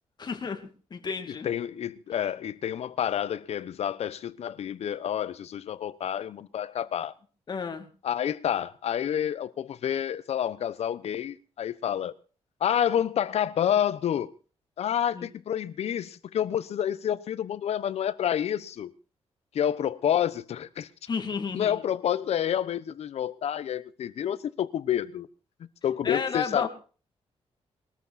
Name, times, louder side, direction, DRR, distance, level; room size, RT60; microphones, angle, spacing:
voice 1, 0.2-1.5 7.5-7.9 15.1-15.3 21.1-21.8 26.0-26.7, left 5 dB, 40° left, 2.5 m, -32 dB
voice 2, 1.4-7.1 8.0-12.2 12.6-14.3 14.8-18.9 19.5-20.9 21.5-25.3 25.8-26.7, left 9 dB, 70° left, 1.0 m, -29 dB
21.5 x 13.5 x 4.3 m
wide cardioid pair, 125°, 11 cm